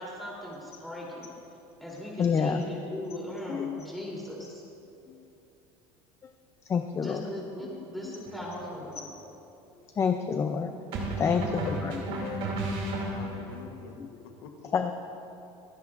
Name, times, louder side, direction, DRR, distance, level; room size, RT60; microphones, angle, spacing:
voice 1, 0.0-1.3 1.8-4.6 7.0-9.1, left 1 dB, ahead, -5 dB, 3.3 m, -39 dB
voice 2, 2.2-2.6 3.5-3.8 5.1-5.2 6.7-7.2 7.7-8.2 10.0-10.7 11.2-12.2 14.0-14.1 14.7-14.9, left 6 dB, 25° left, 6 dB, 0.5 m, -28 dB
sound 1, 8.3-8.5 10.9-13.6, right 1 dB, 50° right, 2.7 m, -33 dB
voice 3, 11.1-12.6 13.1-14.0 14.2-14.7, left 7 dB, 85° left, 4 dB, 1.2 m, -45 dB
26.0 x 9.7 x 2.5 m, 2.8 s
cardioid pair, 140°, 12 cm